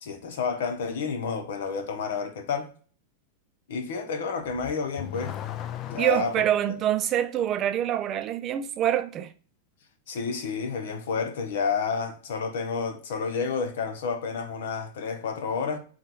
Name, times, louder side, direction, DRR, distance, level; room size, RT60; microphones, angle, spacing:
voice 1, 0.0-2.7 3.7-5.4 5.9-6.3 10.1-15.8, left 5 dB, 75° left, 0.9 m, -30 dB
Car / Accelerating revving vroom, 4.4-6.7, left 11 dB, 40° left, 0.4 m, -37 dB
voice 2, 6.0-9.3, right 11 dB, 35° right, 0.5 m, -25 dB
3.7 x 2.3 x 4.4 m
hypercardioid pair, 115°, 0 cm